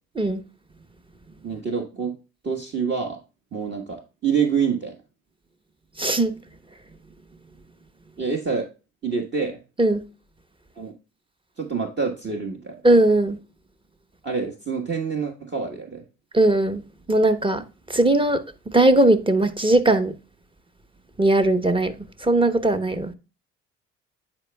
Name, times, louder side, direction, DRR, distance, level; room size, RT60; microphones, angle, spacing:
voice 1, 1.4-2.2 2.4-3.2 3.5-4.9 8.2-8.7 9.0-9.6 10.8-10.9 11.6-12.8 14.2-16.0, right 6 dB, 35° right, 1.4 m, -26 dB
voice 2, 6.0-6.4 9.8-10.1 12.8-13.4 16.3-17.6 17.9-20.1 21.2-21.9 22.2-23.1, right 2 dB, 15° right, 0.9 m, -19 dB
9.7 x 4.4 x 2.2 m
hypercardioid pair, 60°, 31 cm